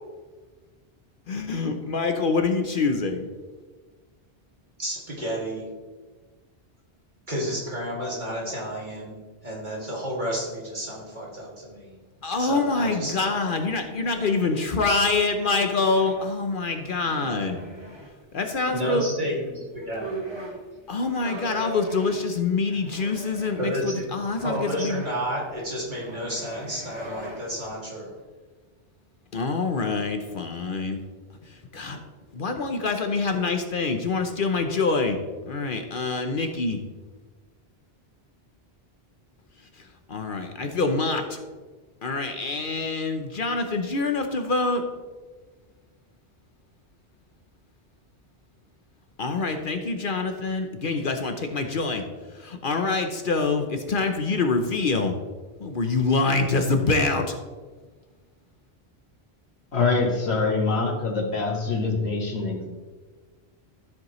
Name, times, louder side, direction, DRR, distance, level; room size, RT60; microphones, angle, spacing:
voice 1, 1.3-3.3 12.2-17.6 18.3-19.1 20.9-25.0 29.3-31.0 31.5-32.0 32.3-35.2 35.5-36.8 39.8-39.9 40.1-41.4 42.0-44.8 49.2-52.0 52.3-55.1 55.6-57.4, left 3 dB, 55° left, 5 dB, 0.9 m, -25 dB
voice 2, 4.8-5.7 7.3-11.9 12.4-13.4 18.7-20.3 23.6-24.1 24.4-28.1, equal, 50° right, -4 dB, 2.6 m, -31 dB
sound 1, 12.7-16.3 17.0-18.1 19.5-19.6 19.8-27.7, right 2 dB, 25° right, 1.4 m, -41 dB
voice 3, 59.7-62.7, left 4 dB, 85° left, -1 dB, 2.0 m, -24 dB
13.0 x 7.6 x 3.1 m, 1.4 s
omnidirectional pair, 1.1 m